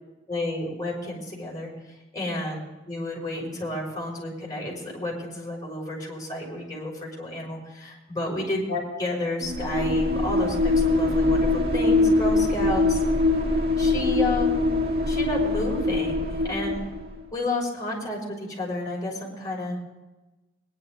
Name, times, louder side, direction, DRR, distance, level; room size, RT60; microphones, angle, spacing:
voice 1, 0.3-1.7 2.1-13.0 13.8-14.7 15.1-16.9 17.3-19.8, left 1 dB, 20° left, -3 dB, 5.9 m, -31 dB
sound 1, 9.4-17.2, left 2 dB, 55° right, 1.8 m, -23 dB
21.0 x 11.0 x 3.9 m, 1.1 s
head